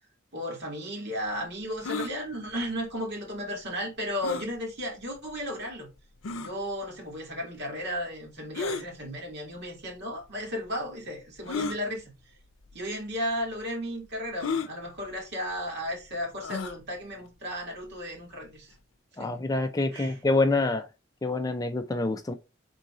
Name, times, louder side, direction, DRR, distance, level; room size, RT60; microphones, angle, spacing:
voice 1, 0.3-5.9 6.4-12.0 12.7-18.7 19.2-19.3 19.9-20.2, equal, 60° right, 1.9 m, -34 dB
sound 1, 1.8-2.1 4.2-4.5 5.3-5.4 6.2-6.5 8.5-8.9 9.9-10.0 11.5-11.8 12.7-12.9 13.1-13.2 14.4-14.7 16.4-16.8, left 4 dB, 85° left, 0.6 m, -32 dB
voice 2, 19.2-20.9 21.2-22.3, left 2 dB, 20° left, 0.4 m, -26 dB
3.8 x 2.7 x 4.8 m
head